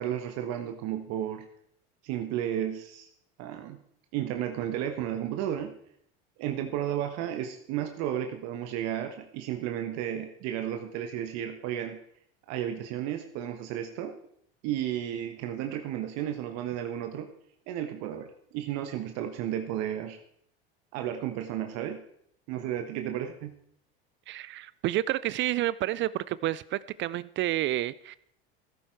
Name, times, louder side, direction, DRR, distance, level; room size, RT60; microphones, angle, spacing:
voice 1, 0.0-1.4 2.0-3.1 3.4-3.8 4.1-5.7 6.4-12.0 12.5-14.1 14.6-17.3 17.7-20.2 20.9-22.0 22.5-23.5, right 10 dB, 60° right, 6 dB, 1.3 m, -33 dB
voice 2, 24.3-28.2, right 15 dB, 40° right, 19 dB, 0.4 m, -30 dB
15.5 x 8.9 x 4.6 m, 0.69 s
hypercardioid pair, 85°, 29 cm